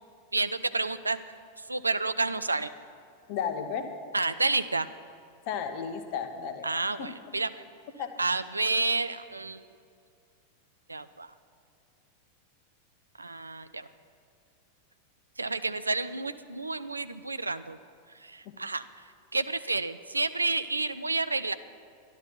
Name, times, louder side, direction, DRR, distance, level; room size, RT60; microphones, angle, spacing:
voice 1, 0.3-1.2 1.6-2.7 4.1-4.9 6.6-7.6 8.2-9.7 10.9-11.3 13.2-13.9 15.4-17.8 18.2-18.8 19.3-21.5, right 3 dB, 80° right, 12 dB, 0.4 m, -30 dB
voice 2, 3.3-3.9 5.5-6.7 7.0-7.1 8.0-8.1, left 7 dB, 45° left, 7 dB, 1.0 m, -33 dB
12.0 x 11.5 x 5.7 m, 2.4 s
figure-of-eight pair, 90°, 0 cm